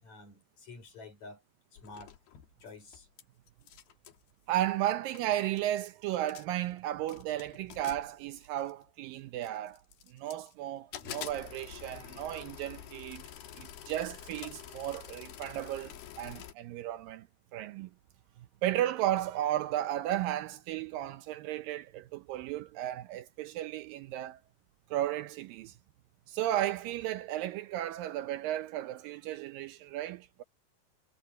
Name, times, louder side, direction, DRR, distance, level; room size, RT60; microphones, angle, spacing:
voice 1, 0.0-1.4 1.7-2.1 2.6-3.1, left 3 dB, 50° left, 6.5 m, -49 dB
sound 1, 1.8-3.2 3.5-4.2 4.9-5.0 5.2-5.7 6.1-6.7 7.1-8.9 9.4-10.5 10.9-16.5, left 10 dB, 90° left, 3.5 m, -47 dB
voice 2, 4.5-9.8 10.1-13.2 13.6-17.3 17.5-17.9 18.4-24.4 24.9-25.8 26.3-30.4, right 13 dB, 80° right, 2.3 m, -34 dB
omnidirectional pair, 4.3 m